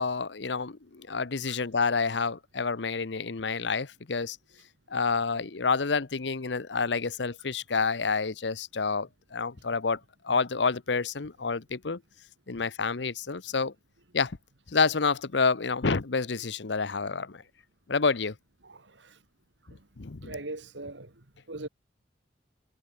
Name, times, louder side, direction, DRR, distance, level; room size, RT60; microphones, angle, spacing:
voice 1, 0.0-4.4 4.9-12.0 12.5-13.7 14.1-14.4 14.7-17.4 17.9-18.3 19.7-20.3, left 4 dB, 75° left, 0.9 m, -28 dB
voice 2, 18.6-19.2 19.7-19.9 20.2-21.7, right 2 dB, 85° right, 2.6 m, -42 dB
head